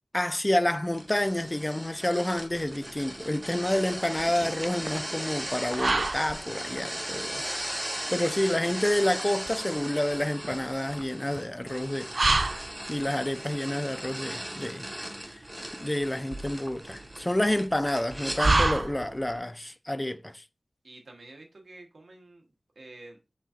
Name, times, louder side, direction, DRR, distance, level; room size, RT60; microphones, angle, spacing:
voice 1, 0.1-7.5 8.1-12.1 12.9-14.9 15.8-20.3, left 1 dB, 20° left, 0.3 m, -29 dB
sound 1, 0.9-18.4, right 1 dB, 20° right, 1.3 m, -38 dB
sound 2, 2.3-19.4, right 2 dB, 60° right, 0.3 m, -32 dB
voice 2, 20.8-22.4 22.8-23.2, right 2 dB, 80° right, 1.0 m, -48 dB
5.2 x 3.8 x 2.4 m
wide cardioid pair, 50°, 0 cm